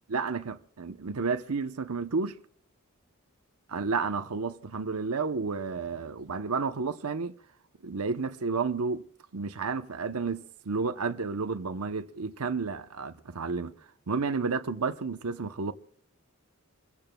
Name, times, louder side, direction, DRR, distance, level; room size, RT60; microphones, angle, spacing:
voice 1, 0.1-2.4 3.7-7.3 7.8-9.1 9.3-13.7 14.1-15.7, right 4 dB, 85° right, 0.8 m, -31 dB
28.5 x 15.5 x 2.3 m
head